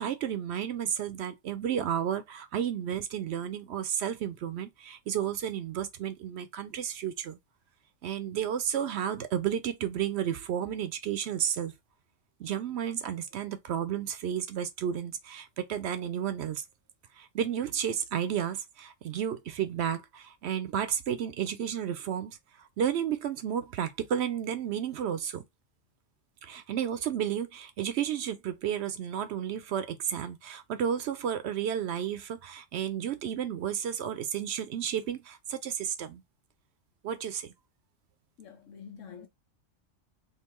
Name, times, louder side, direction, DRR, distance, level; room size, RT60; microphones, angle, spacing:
voice 1, 0.0-7.4 8.0-11.7 12.4-16.6 17.1-25.4 26.4-36.2 37.0-37.5, right 9 dB, 65° right, 0.8 m, -32 dB
voice 2, 38.4-39.3, left 7 dB, 80° left, 1.2 m, -47 dB
3.6 x 2.6 x 3.0 m
omnidirectional pair, 1.3 m